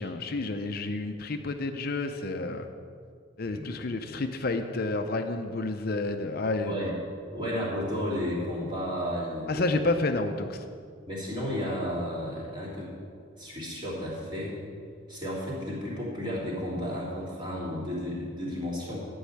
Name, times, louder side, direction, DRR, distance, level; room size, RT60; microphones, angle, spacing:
voice 1, 0.0-2.7 3.4-6.7 9.5-10.6, left 2 dB, 50° left, 6 dB, 0.6 m, -30 dB
voice 2, 3.4-3.7 6.6-6.9 7.3-9.9 11.1-12.9 13.4-14.6 15.1-19.0, equal, 25° right, -6 dB, 3.3 m, -33 dB
11.5 x 5.5 x 8.6 m, 2.2 s
head